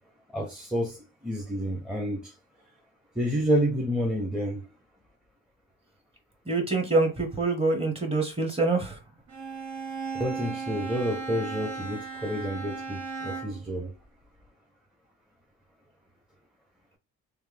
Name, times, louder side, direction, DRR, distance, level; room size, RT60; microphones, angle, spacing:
voice 1, 0.3-1.0 1.2-2.3 3.2-4.6 10.1-13.9, equal, ahead, 0.7 m, -29 dB
voice 2, 6.5-9.0, right 3 dB, 20° right, 1.2 m, -25 dB
Bowed string instrument, 9.3-13.7, right 4 dB, 65° right, 1.2 m, -36 dB
3.2 x 2.2 x 3.3 m
cardioid pair, 90°, 30 cm